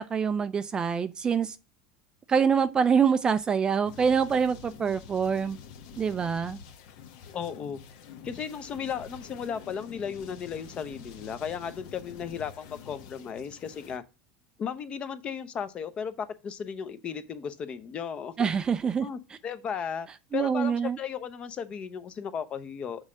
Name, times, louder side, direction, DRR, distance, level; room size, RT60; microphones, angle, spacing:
voice 1, 0.0-1.6 2.3-5.6 6.0-6.6 18.4-19.1 20.3-21.0, right 6 dB, 20° right, 0.4 m, -25 dB
sound 1, 3.8-14.0, left 7 dB, 65° left, 1.1 m, -47 dB
voice 2, 7.3-7.8 8.2-14.0 14.6-18.5 19.0-23.0, left 7 dB, 30° left, 0.7 m, -35 dB
6.5 x 3.7 x 6.1 m
supercardioid pair, 140°, 4 cm